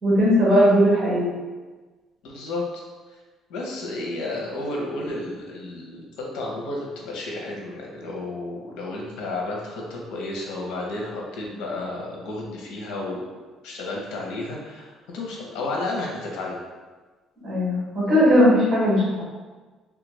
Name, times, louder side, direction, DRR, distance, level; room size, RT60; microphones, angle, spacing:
voice 1, 0.0-1.3 17.4-19.2, equal, 35° right, -6 dB, 1.4 m, -18 dB
voice 2, 2.2-2.8 3.5-13.2 13.6-16.6, left 2 dB, 90° left, -1 dB, 0.8 m, -32 dB
3.1 x 2.4 x 3.1 m, 1.3 s
cardioid pair, 145°, 0 cm